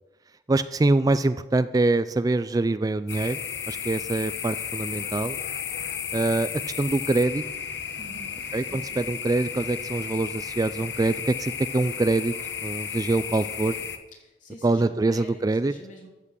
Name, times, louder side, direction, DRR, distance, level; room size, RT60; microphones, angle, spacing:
voice 1, 0.5-3.4 3.7-5.4 6.1-7.4 8.5-12.3 12.6-13.7 14.6-15.7, right 2 dB, 20° right, 13 dB, 0.3 m, -24 dB
sound 1, 3.1-14.0, left 7 dB, 70° left, 1.1 m, -34 dB
voice 2, 8.0-9.0 14.2-16.1, equal, 45° left, -1 dB, 3.2 m, -47 dB
13.5 x 6.1 x 7.4 m, 1.1 s
head